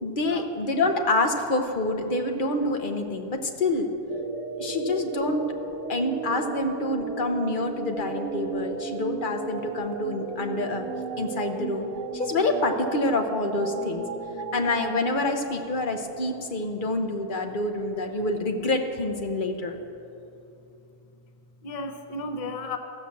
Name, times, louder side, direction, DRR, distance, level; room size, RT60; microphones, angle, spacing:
voice 1, 0.0-3.9 4.6-5.4 5.9-10.9 11.2-11.9 12.1-14.0 14.5-19.8, left 2 dB, 40° left, 4 dB, 0.9 m, -27 dB
sound 1, 4.1-15.1, right 4 dB, 60° right, 1.2 m, -34 dB
voice 2, 21.6-22.8, left 2 dB, 70° left, 6 dB, 0.3 m, -35 dB
14.5 x 6.1 x 7.2 m, 2.7 s
omnidirectional pair, 1.6 m